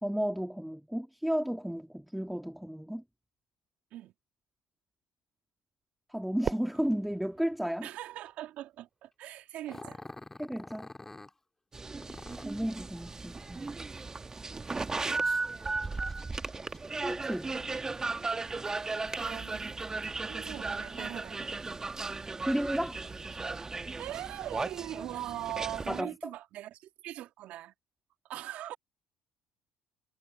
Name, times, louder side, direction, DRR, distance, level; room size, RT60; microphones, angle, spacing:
voice 1, 0.0-3.0 6.1-7.9 10.4-10.9 12.4-13.7 17.0-17.5 22.5-23.0 25.9-26.1, equal, 5° right, 2.3 m, -33 dB
Fireworks, 6.4-8.8, right 7 dB, 45° right, 1.9 m, -41 dB
voice 2, 7.8-10.0 19.2-20.0 20.3-21.5 24.0-27.7 28.2-28.8, right 13 dB, 65° right, 1.9 m, -41 dB
Growling, 9.7-11.3 12.0-12.6 15.2-20.0 20.5-21.3 21.8-21.9 22.6-23.6, left 2 dB, 15° left, 2.2 m, -50 dB
sound 1, 11.7-26.0, right 3 dB, 25° right, 1.5 m, -36 dB
hypercardioid pair, 65°, 2 cm